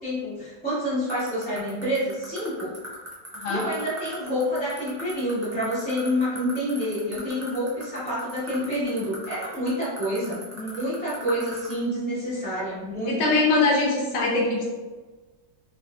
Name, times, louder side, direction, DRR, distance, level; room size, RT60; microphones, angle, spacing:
voice 1, 0.0-2.7 3.5-13.2, equal, 5° left, -13 dB, 1.1 m, -28 dB
sound 1, 1.1-11.7, right 2 dB, 15° right, 0.5 m, -39 dB
voice 2, 3.3-3.6 13.2-14.7, left 3 dB, 80° left, -3 dB, 1.5 m, -22 dB
3.4 x 3.3 x 2.6 m, 1.3 s
omnidirectional pair, 1.9 m